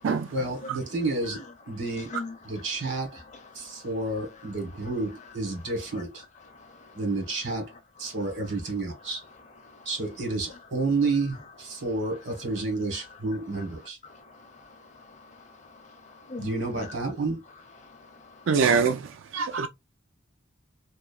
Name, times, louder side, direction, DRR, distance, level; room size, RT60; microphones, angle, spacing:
voice 1, 0.3-2.1 2.4-3.2 3.5-6.2 6.9-7.7 8.0-9.2 9.8-14.0 16.4-17.4, right 3 dB, 60° right, 1.1 m, -30 dB
voice 2, 3.5-3.9 6.5-7.0 9.7-9.9 14.0-16.5 16.8-16.9 17.8-18.6 19.5-19.7, left 3 dB, 35° left, 0.5 m, -44 dB
voice 3, 18.5-19.7, right 5 dB, 80° right, 0.4 m, -24 dB
3.0 x 2.1 x 2.3 m
head